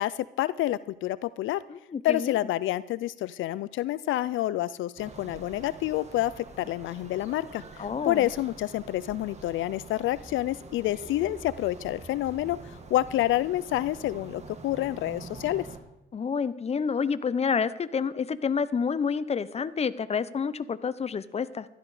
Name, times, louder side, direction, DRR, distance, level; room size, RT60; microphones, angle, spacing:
voice 1, 0.0-1.6 2.0-15.7, left 14 dB, 80° left, 17 dB, 0.4 m, -28 dB
voice 2, 1.7-2.3 7.8-8.2 16.1-21.7, left 6 dB, 30° left, 15 dB, 0.7 m, -29 dB
sound 1, 5.0-15.8, right 3 dB, 35° right, 2.2 m, -46 dB
15.5 x 12.0 x 4.9 m, 0.90 s
cardioid pair, 90°, 20 cm